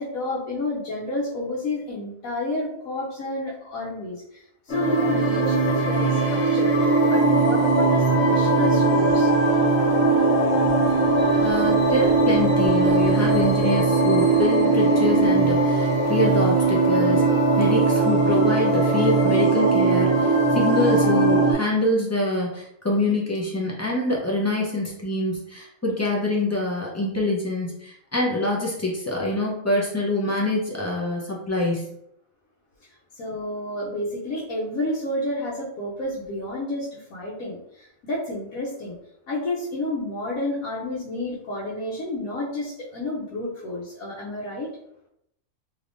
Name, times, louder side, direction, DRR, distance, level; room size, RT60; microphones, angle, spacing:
voice 1, 0.0-9.3 32.8-32.9 33.1-39.0 39.3-44.7, left 1 dB, 90° left, -6 dB, 1.2 m, -30 dB
sound 1, 4.7-21.5, right 3 dB, 55° left, 1.1 m, -20 dB
voice 2, 11.4-17.2 17.6-31.8, left 2 dB, 20° left, -4 dB, 0.4 m, -25 dB
3.4 x 3.0 x 2.5 m, 0.77 s
omnidirectional pair, 1.4 m